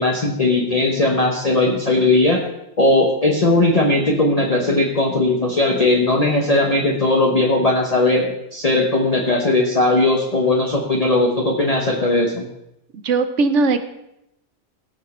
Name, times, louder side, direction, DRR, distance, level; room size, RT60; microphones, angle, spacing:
voice 1, 0.0-2.4 2.8-12.5, left 2 dB, 30° left, -1 dB, 1.1 m, -18 dB
voice 2, 13.0-13.8, right 3 dB, 70° right, 10 dB, 1.2 m, -18 dB
17.0 x 6.3 x 4.3 m, 0.84 s
omnidirectional pair, 1.3 m